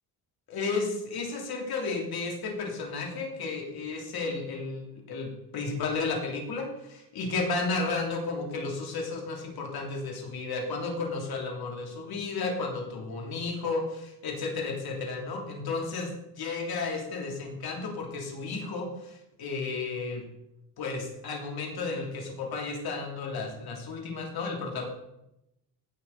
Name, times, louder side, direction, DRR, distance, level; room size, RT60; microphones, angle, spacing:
voice 1, 0.5-20.3 20.8-24.8, left 3 dB, 65° left, 0 dB, 3.0 m, -33 dB
16.5 x 6.5 x 4.0 m, 0.86 s
cardioid pair, 100°, 40 cm